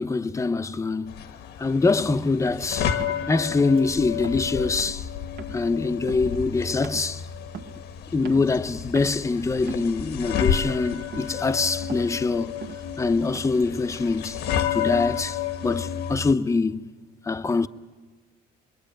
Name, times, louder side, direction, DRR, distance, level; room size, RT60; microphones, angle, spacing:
voice 1, 0.0-1.3 1.6-3.0 3.3-5.1 5.5-7.2 8.1-12.5 13.0-14.4 14.7-16.9 17.2-17.7, left 3 dB, 15° left, 0.8 m, -24 dB
sound 1, 1.1-16.3, left 8 dB, 80° left, 1.4 m, -31 dB
sound 2, 2.0-2.2 2.5-2.7 3.0-3.3 3.6-3.9 4.2-4.5 4.8-5.0 5.4-5.7 6.1-6.4 6.8-7.1 7.5-7.8 8.3-8.7 9.0-9.2 9.6-10.1 10.4-10.8 11.1-11.4 11.7-12.1 12.6-12.9 13.4-13.8, right 6 dB, 65° right, 1.7 m, -41 dB
27.0 x 22.0 x 9.1 m
cardioid pair, 110°, 17 cm